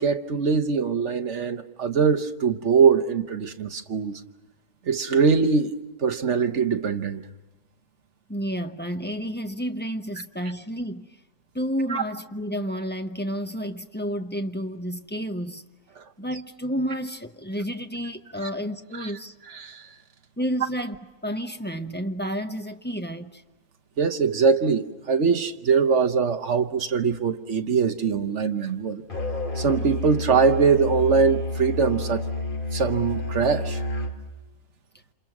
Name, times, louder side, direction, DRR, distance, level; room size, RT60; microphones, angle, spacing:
voice 1, 0.0-4.2 4.9-5.7 6.0-7.2 11.9-12.0 16.0-16.1 18.9-19.1 19.5-19.9 24.0-29.0 29.6-32.2 32.7-33.8, right 5 dB, 50° right, 1.2 m, -22 dB
voice 2, 8.3-11.2 11.5-15.6 16.2-19.3 20.4-21.0 21.2-23.4, equal, 10° left, 0.6 m, -30 dB
Musical instrument, 29.1-34.2, left 2 dB, 30° left, 2.1 m, -30 dB
28.5 x 27.5 x 6.0 m
omnidirectional pair, 1.7 m